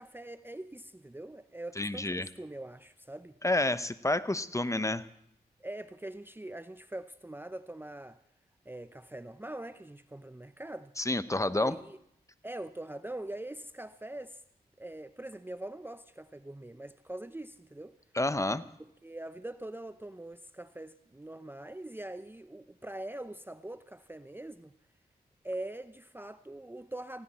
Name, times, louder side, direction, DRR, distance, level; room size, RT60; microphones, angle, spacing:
voice 1, 0.0-3.4 5.6-8.2 8.7-10.9 11.5-12.0 12.4-14.4 14.8-17.9 18.8-24.7 25.4-27.2, right 1 dB, 10° right, 0.6 m, -43 dB
voice 2, 1.8-2.3 3.4-5.0 11.0-11.7 18.1-18.6, left 2 dB, 20° left, 0.9 m, -29 dB
19.0 x 16.0 x 4.3 m
cardioid pair, 45°, 17 cm